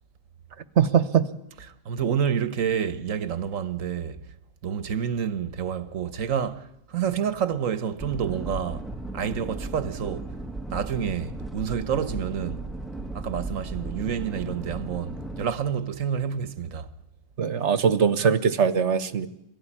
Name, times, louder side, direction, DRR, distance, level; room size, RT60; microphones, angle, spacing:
voice 1, 0.8-1.3 17.4-19.3, right 7 dB, 65° right, 1.4 m, -21 dB
voice 2, 1.8-4.2 4.6-8.9 9.1-10.3 10.7-12.7 13.1-16.9, right 8 dB, 90° right, 1.5 m, -28 dB
sound 1, 8.0-15.5, right 2 dB, ahead, 1.1 m, -36 dB
24.0 x 16.5 x 10.0 m
omnidirectional pair, 1.3 m